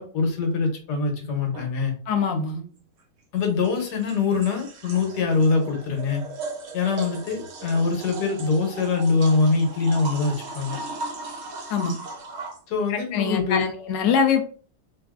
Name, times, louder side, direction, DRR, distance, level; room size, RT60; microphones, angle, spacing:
voice 1, 0.0-1.9 3.3-6.2 6.7-10.8 12.7-13.7, left 4 dB, 70° left, 3 dB, 1.4 m, -23 dB
sound 1, 1.5-1.7 3.4-12.6, right 3 dB, 85° right, 0.5 m, -37 dB
voice 2, 2.1-2.7 11.7-12.0 12.9-14.4, left 6 dB, 85° left, 5 dB, 1.3 m, -23 dB
3.5 x 2.5 x 2.4 m, 0.41 s
omnidirectional pair, 1.9 m